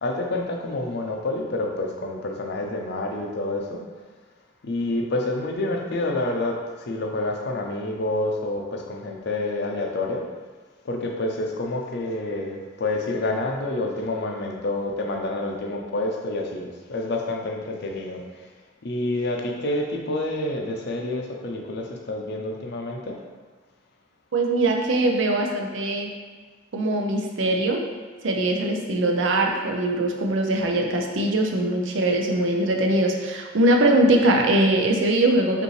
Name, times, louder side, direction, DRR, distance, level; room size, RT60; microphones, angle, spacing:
voice 1, 0.0-3.8 4.6-10.3 10.8-18.2 18.8-23.2, left 2 dB, 55° left, 1 dB, 0.5 m, -28 dB
voice 2, 24.3-26.1 26.7-27.9 28.2-35.6, right 1 dB, 75° right, 2 dB, 0.5 m, -21 dB
5.1 x 2.6 x 3.2 m, 1.4 s
head